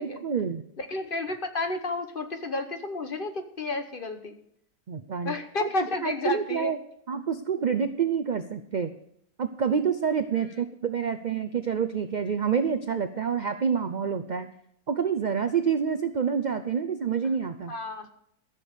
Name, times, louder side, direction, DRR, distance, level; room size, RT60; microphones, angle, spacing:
voice 1, 0.0-0.6 4.9-5.3 5.6-6.8 7.1-8.9 9.4-14.5 14.9-17.7, right 7 dB, 65° right, 9 dB, 0.4 m, -27 dB
voice 2, 0.8-4.4 5.2-6.7 10.5-10.6 17.7-18.1, left 3 dB, 40° left, 7 dB, 1.1 m, -31 dB
14.0 x 7.0 x 6.6 m, 0.72 s
omnidirectional pair, 1.6 m